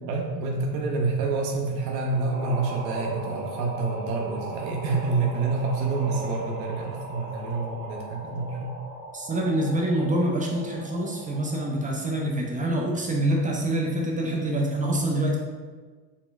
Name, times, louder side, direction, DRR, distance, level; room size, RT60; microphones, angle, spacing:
voice 1, 0.0-8.7, right 3 dB, 80° right, 0 dB, 0.7 m, -28 dB
sound 1, 2.0-11.8, right 2 dB, 55° right, 1.1 m, -38 dB
voice 2, 9.1-15.4, right 1 dB, 15° right, -1 dB, 0.4 m, -26 dB
4.1 x 3.5 x 2.3 m, 1.4 s
hypercardioid pair, 90°, 49 cm